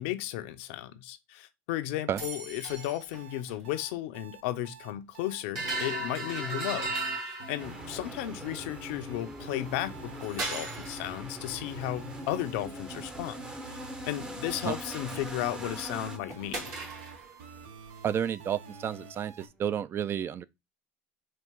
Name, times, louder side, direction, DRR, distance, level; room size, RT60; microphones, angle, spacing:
voice 1, 0.0-13.4 13.7-13.8 14.0-16.6, left 13 dB, 75° left, 0.5 m, -34 dB
sound 1, 2.2-3.2 3.5-3.6 5.5-8.0 10.2-11.1 14.6-14.7 15.0-15.9 16.3-17.3, right 2 dB, 60° right, 2.3 m, -36 dB
sound 2, 2.6-19.5, right 4 dB, 80° right, 0.7 m, -48 dB
sound 3, 7.6-16.2, equal, 10° right, 0.7 m, -42 dB
voice 2, 18.0-20.4, right 9 dB, 40° right, 0.3 m, -31 dB
4.1 x 2.5 x 3.5 m
hypercardioid pair, 85°, 6 cm